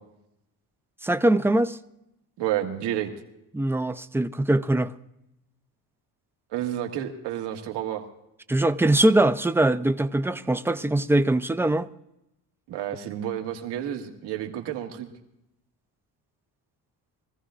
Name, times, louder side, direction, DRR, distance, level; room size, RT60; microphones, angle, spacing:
voice 1, 1.0-1.8 3.5-4.9 8.5-11.9, right 1 dB, 5° right, 0.4 m, -22 dB
voice 2, 2.4-3.1 6.5-8.0 12.7-15.1, right 11 dB, 85° right, 1.9 m, -30 dB
24.0 x 15.0 x 2.5 m
cardioid pair, 110°, 40 cm